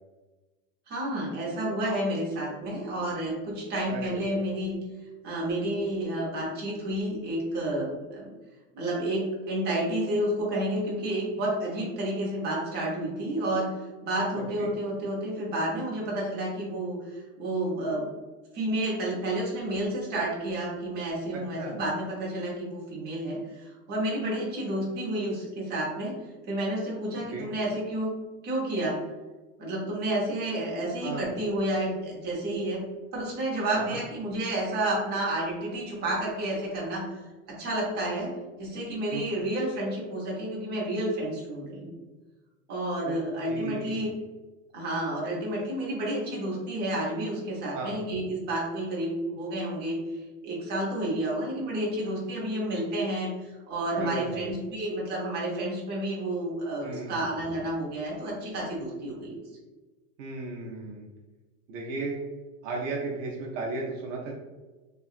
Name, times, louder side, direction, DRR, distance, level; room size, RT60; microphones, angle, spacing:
voice 1, 0.9-4.7 5.2-8.3 8.7-13.7 14.0-18.1 18.5-26.1 26.5-28.1 28.4-29.0 29.6-32.8 33.1-37.1 37.5-38.3 38.6-41.9 42.7-44.1 44.7-50.0 50.4-59.4, right 1 dB, 25° right, -5 dB, 0.8 m, -30 dB
voice 2, 3.9-4.3 14.4-14.7 21.3-21.8 27.3-27.5 31.0-31.3 33.7-34.0 39.1-39.2 43.0-43.1 43.5-44.2 47.7-48.0 54.0-54.4 56.8-57.3 60.2-61.0 61.7-62.2 62.6-64.3, right 3 dB, 60° right, -2 dB, 0.7 m, -35 dB
2.8 x 2.2 x 2.4 m, 1.2 s
supercardioid pair, 145°, 42 cm